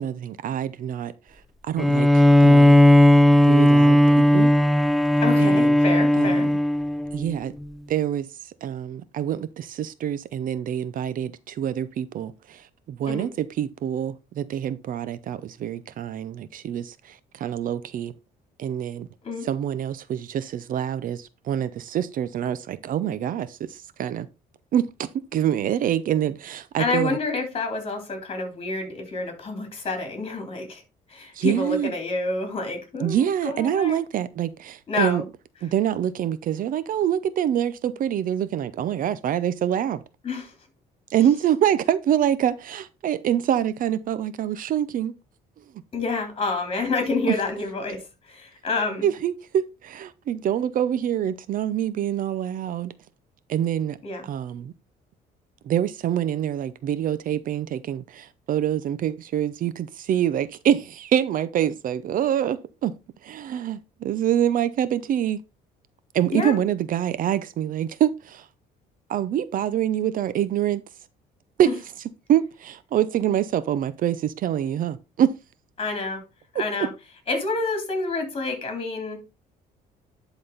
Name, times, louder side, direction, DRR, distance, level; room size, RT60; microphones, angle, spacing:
voice 1, 0.0-2.8 3.5-4.0 4.3-4.5 5.4-5.8 6.2-6.5 7.1-7.5 7.9-18.1 18.6-19.1 19.4-24.3 24.7-27.2 31.3-31.9 33.0-35.2 35.6-40.0 41.1-45.1 47.3-47.4 49.0-52.9 53.5-54.0 54.2-54.7 55.6-62.9 63.2-65.4 66.1-68.5 69.1-70.8 71.6-71.7 72.3-75.3 76.5-76.6, right 10 dB, 55° right, 0.6 m, -25 dB
Bowed string instrument, 1.8-7.2, left 1 dB, ahead, 0.5 m, -16 dB
voice 2, 5.2-6.5 13.0-13.3 19.2-19.5 26.8-30.8 31.1-34.0 34.9-35.2 40.2-40.5 45.9-48.0 48.3-49.1 54.0-54.3 66.3-66.5 75.8-76.2 76.5-76.9 77.3-79.2, left 3 dB, 35° left, 3.6 m, -28 dB
11.0 x 4.2 x 4.0 m
cardioid pair, 110°, 17 cm